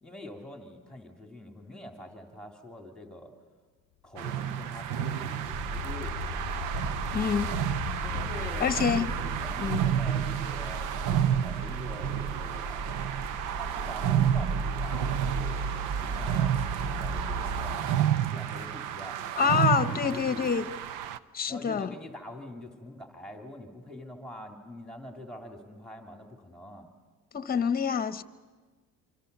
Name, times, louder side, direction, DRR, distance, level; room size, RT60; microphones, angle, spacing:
voice 1, 0.0-3.3 4.0-6.2 8.0-13.2 13.5-15.7 16.0-16.6 16.9-17.8 18.1-20.5 21.5-26.9, left 1 dB, ahead, 2.8 m, -45 dB
sound 1, 4.2-21.2, right 10 dB, 90° right, 0.9 m, -31 dB
sound 2, 4.3-11.1, left 18 dB, 75° left, 0.7 m, -41 dB
sound 3, 5.5-17.8, right 3 dB, 60° right, 2.0 m, -36 dB
voice 2, 7.1-7.5 8.6-9.1 9.6-9.8 19.4-20.7 21.3-21.9 27.3-28.2, left 6 dB, 30° left, 1.1 m, -26 dB
26.0 x 25.0 x 6.8 m
cardioid pair, 105°, 32 cm